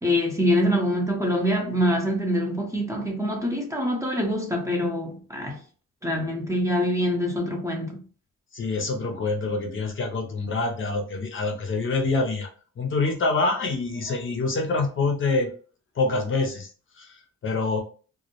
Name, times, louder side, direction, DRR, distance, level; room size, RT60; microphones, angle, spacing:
voice 1, 0.0-5.6 6.0-8.0, equal, 10° right, 0.7 m, -25 dB
voice 2, 8.5-12.5 12.8-15.5 16.0-16.7 17.0-17.8, left 3 dB, 40° left, 0.6 m, -26 dB
2.2 x 2.0 x 2.9 m
cardioid pair, 90°, 30 cm